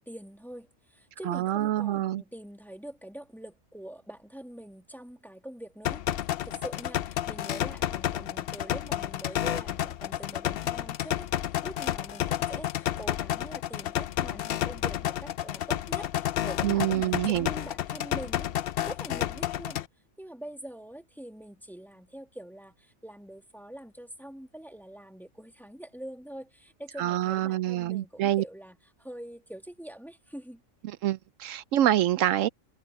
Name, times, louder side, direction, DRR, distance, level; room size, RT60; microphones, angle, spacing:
voice 1, 0.0-6.0 6.4-11.3 11.6-18.5 18.9-19.8 20.2-30.6, right 1 dB, ahead, 1.7 m, -44 dB
voice 2, 1.3-2.2 16.6-17.5 27.0-28.4 30.8-32.5, right 13 dB, 75° right, 0.9 m, -26 dB
sound 1, 5.8-19.8, left 12 dB, 60° left, 0.7 m, -31 dB
omnidirectional pair, 1.4 m